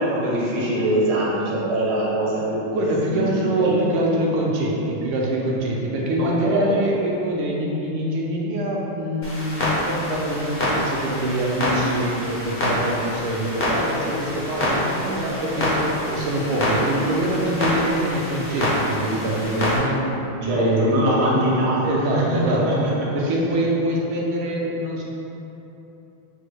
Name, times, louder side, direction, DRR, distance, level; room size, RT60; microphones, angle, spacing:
voice 1, 0.0-2.7 3.1-3.8 6.2-6.8 20.4-21.8 22.1-22.9, right 1 dB, 55° right, -6 dB, 0.7 m, -23 dB
voice 2, 2.7-20.1 20.4-22.6 23.1-25.0, right 1 dB, 80° right, -3 dB, 1.4 m, -24 dB
Clock, 9.2-19.8, left 1 dB, 55° left, 0.6 m, -26 dB
6.3 x 2.2 x 3.1 m, 3.0 s
omnidirectional pair, 2.3 m